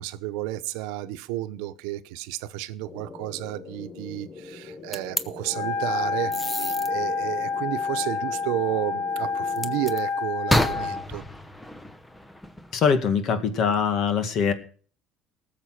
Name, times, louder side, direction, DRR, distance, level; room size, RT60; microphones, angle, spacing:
voice 1, 0.0-11.3, right 15 dB, 90° right, 0.9 m, -32 dB
sound 1, 2.9-9.9, left 4 dB, 30° left, 1.5 m, -43 dB
sound 2, 4.9-5.2 6.3-6.9 9.6-10.0 10.5-12.7, left 1 dB, 5° left, 0.9 m, -28 dB
Wind instrument woodwind instrument, 5.4-11.1, left 4 dB, 85° left, 1.7 m, -28 dB
voice 2, 12.7-14.5, left 6 dB, 50° left, 2.1 m, -23 dB
19.0 x 7.4 x 6.0 m
cardioid pair, 140°, 0 cm